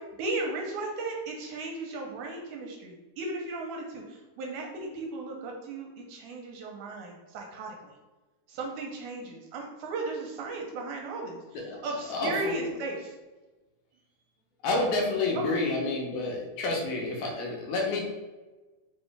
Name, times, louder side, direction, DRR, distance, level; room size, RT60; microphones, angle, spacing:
voice 1, 0.2-7.9 8.5-11.4 11.8-13.1 15.5-15.6, right 2 dB, 80° right, 0 dB, 2.0 m, -36 dB
voice 2, 11.5-12.6 14.6-18.1, left 3 dB, 75° left, -1 dB, 2.1 m, -29 dB
4.8 x 3.1 x 3.2 m, 1.2 s
omnidirectional pair, 3.7 m